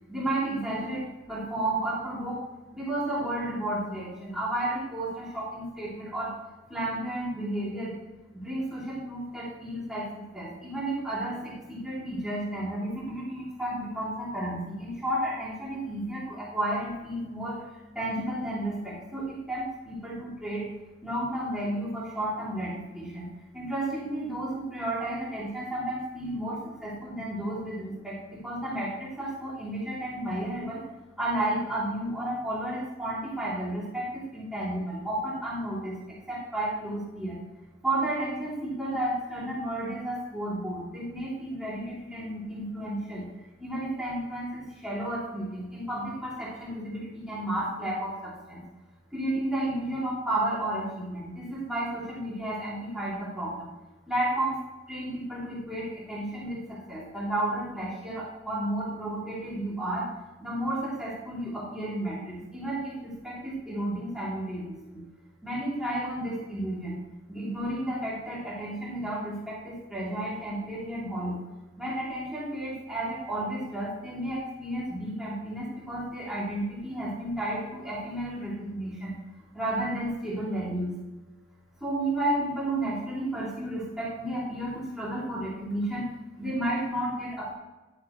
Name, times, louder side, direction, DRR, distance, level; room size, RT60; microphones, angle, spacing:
voice 1, 0.1-2.4 2.7-6.3 6.7-7.9 8.3-17.6 17.9-20.7 21.0-23.3 23.5-30.9 31.2-37.4 37.8-43.2 43.6-48.6 49.1-53.7 54.1-54.6 54.9-60.1 60.4-65.0 65.4-67.0 67.3-71.4 71.8-79.1 79.5-81.0 81.8-86.1 86.4-87.5, right 1 dB, 5° right, -8 dB, 3.3 m, -32 dB
11.0 x 8.0 x 3.2 m, 1.1 s
head